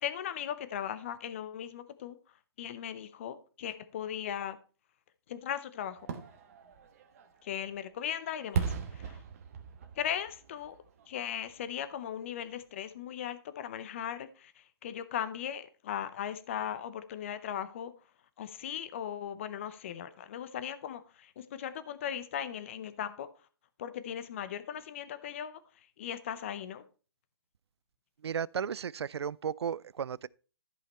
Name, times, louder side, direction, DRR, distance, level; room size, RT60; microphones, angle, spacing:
voice 1, 0.0-2.2 2.6-4.6 5.3-6.1 7.4-9.2 9.9-10.8 11.1-17.9 18.4-23.3 23.8-25.6 26.0-26.8, left 9 dB, 30° left, 0.7 m, -38 dB
Fireworks, 6.0-11.8 12.2-12.3, right 6 dB, 35° right, 1.2 m, -39 dB
voice 2, 28.2-30.3, right 7 dB, 85° right, 0.4 m, -34 dB
13.5 x 5.6 x 4.2 m
hypercardioid pair, 165°, 13 cm